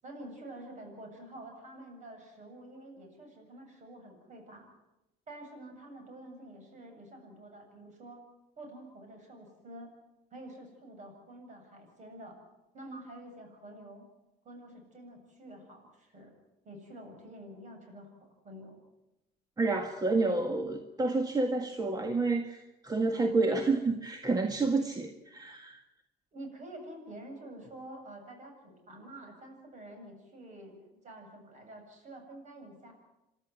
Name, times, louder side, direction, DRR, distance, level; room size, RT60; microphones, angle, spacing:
voice 1, 0.0-4.7 5.3-8.2 8.6-9.9 10.3-12.4 12.7-14.1 14.4-16.3 16.6-18.2 18.4-18.8 26.3-32.9, right 1 dB, 45° right, 3 dB, 7.6 m, -48 dB
voice 2, 19.6-25.8, right 3 dB, 20° right, 6 dB, 1.8 m, -29 dB
28.5 x 12.5 x 9.5 m, 0.95 s
cardioid pair, 110°, 17 cm